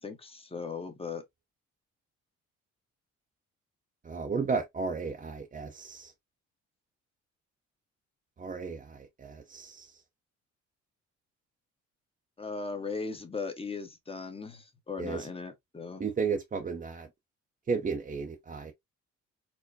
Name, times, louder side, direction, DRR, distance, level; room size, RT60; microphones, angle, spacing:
voice 1, 0.0-1.2 12.4-16.0, left 4 dB, 20° left, 0.9 m, -38 dB
voice 2, 4.0-6.1 8.4-9.9 15.0-15.3 16.0-17.1 17.7-18.7, right 5 dB, 25° right, 0.6 m, -33 dB
4.4 x 2.1 x 2.6 m
cardioid pair, 90°, 30 cm